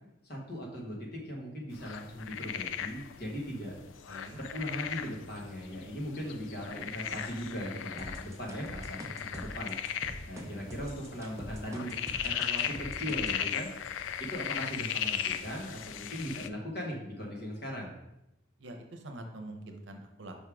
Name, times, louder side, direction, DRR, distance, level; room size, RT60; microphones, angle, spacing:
voice 1, 0.2-3.7 4.4-9.8 10.3-11.9 12.2-13.7 14.2-17.9, equal, 55° left, -1 dB, 1.5 m, -39 dB
sound 1, 1.7-16.5, left 9 dB, 75° left, 0.4 m, -37 dB
voice 2, 4.1-4.4 6.9-7.3 18.6-20.3, right 1 dB, 70° right, 5 dB, 0.8 m, -45 dB
sound 2, 8.0-13.4, right 1 dB, 15° right, 0.8 m, -43 dB
5.4 x 3.6 x 4.8 m, 0.89 s
head